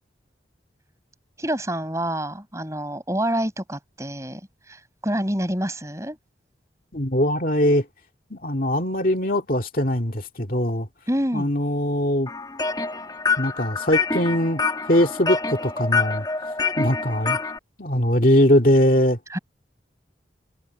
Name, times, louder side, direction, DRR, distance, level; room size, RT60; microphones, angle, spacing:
voice 1, 1.4-6.2 11.1-11.5 19.3-19.4, right 1 dB, 15° right, 5.5 m, -27 dB
voice 2, 6.9-7.9 8.3-10.9 11.3-12.3 13.4-14.6 14.9-16.3 16.8-17.4 17.8-19.2, left 1 dB, 50° left, 2.3 m, -21 dB
sound 1, 12.3-17.6, left 4 dB, 20° left, 2.1 m, -26 dB
head